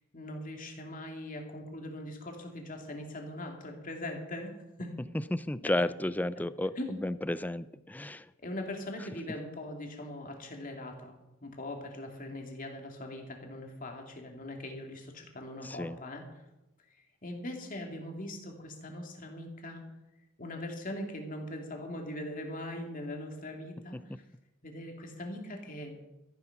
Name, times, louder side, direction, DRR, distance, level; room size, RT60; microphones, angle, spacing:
voice 1, 0.1-4.5 4.8-5.0 6.8-6.9 8.4-11.1 11.4-16.2 16.9-19.9 20.4-24.2 24.6-25.9, left 1 dB, 40° left, 2 dB, 2.7 m, -41 dB
voice 2, 5.3-8.3 15.6-16.0, left 1 dB, 10° left, 15 dB, 0.4 m, -32 dB
14.0 x 10.5 x 5.9 m, 0.98 s
head